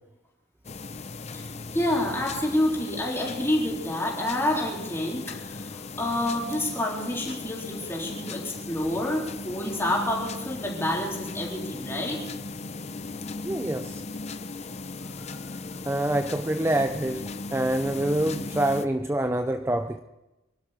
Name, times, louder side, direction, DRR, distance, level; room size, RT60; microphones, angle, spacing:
sound 1, 0.6-18.9, left 3 dB, 35° left, 0.7 m, -37 dB
voice 1, 1.3-12.2, left 1 dB, 15° left, -3 dB, 3.8 m, -28 dB
voice 2, 13.4-14.0 15.3-15.4 15.9-20.0, right 1 dB, 15° right, 8 dB, 0.5 m, -26 dB
24.0 x 12.0 x 5.0 m, 0.99 s
head